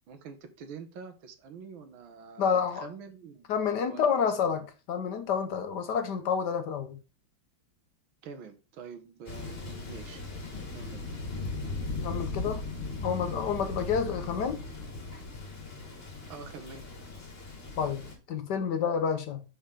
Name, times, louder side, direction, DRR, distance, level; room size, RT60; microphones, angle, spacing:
voice 1, 0.1-3.5 3.8-4.5 8.2-10.2 10.7-11.1 16.2-16.8, right 5 dB, 75° right, 1.8 m, -46 dB
voice 2, 2.4-2.9 3.5-7.0 12.0-12.6 13.0-14.6 17.8-19.4, left 7 dB, 65° left, 1.2 m, -29 dB
Thunder, 9.3-18.2, left 3 dB, 30° left, 1.5 m, -38 dB
6.6 x 5.4 x 3.7 m
omnidirectional pair, 2.2 m